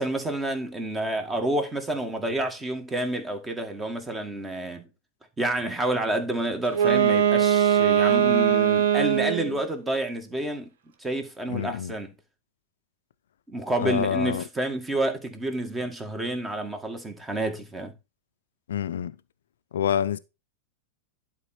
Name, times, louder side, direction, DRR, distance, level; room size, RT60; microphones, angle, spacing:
voice 1, 0.0-4.9 5.4-10.7 11.0-12.1 13.5-17.9, right 1 dB, 15° right, 1.9 m, -29 dB
Wind instrument woodwind instrument, 6.7-9.6, right 9 dB, 65° right, 1.2 m, -21 dB
voice 2, 11.5-11.9 13.8-14.4 18.7-19.1 19.7-20.2, left 9 dB, 70° left, 0.6 m, -27 dB
11.0 x 4.5 x 4.4 m
figure-of-eight pair, 95°, 0 cm